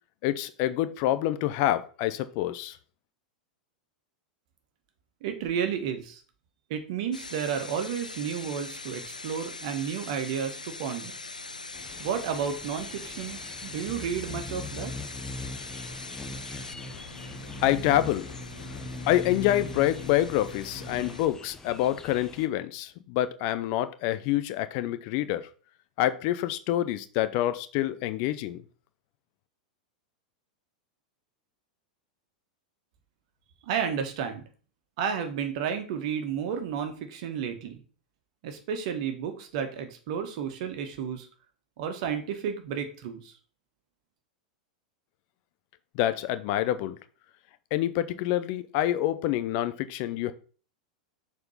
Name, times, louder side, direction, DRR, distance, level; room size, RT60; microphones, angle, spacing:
voice 1, 0.2-2.8 17.6-18.3 19.1-25.5 26.0-28.6 45.9-47.0 47.7-50.3, left 13 dB, 45° left, 12 dB, 0.7 m, -27 dB
voice 2, 5.2-6.2 6.7-11.1 12.0-14.9 33.7-34.4 35.0-37.8 38.4-41.3 41.8-43.3, right 7 dB, 55° right, 7 dB, 1.6 m, -32 dB
sound 1, 7.1-21.3, left 3 dB, 90° left, 0.5 m, -42 dB
sound 2, 11.7-22.5, left 2 dB, 15° left, 0.9 m, -41 dB
6.6 x 4.4 x 5.6 m, 0.40 s
figure-of-eight pair, 90°, 4 cm